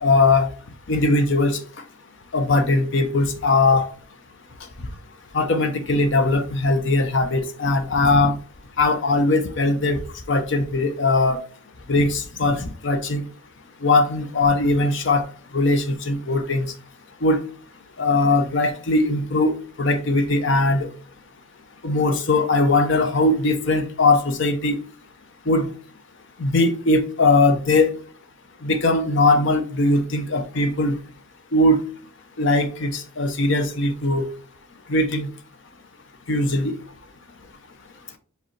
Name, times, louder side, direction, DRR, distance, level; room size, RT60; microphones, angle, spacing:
voice 1, 0.0-0.5 0.9-1.6 2.3-3.9 5.3-8.3 8.8-10.0 10.3-11.4 11.9-13.2 13.8-15.2 15.5-16.7 17.2-17.4 18.0-19.5 19.8-20.9 21.8-24.8 25.5-25.7 26.4-27.9 28.6-31.0 31.5-31.8 32.4-34.2 34.9-35.3 36.3-36.7, left 2 dB, 60° left, 0.7 m, -20 dB
5.0 x 3.3 x 3.2 m
head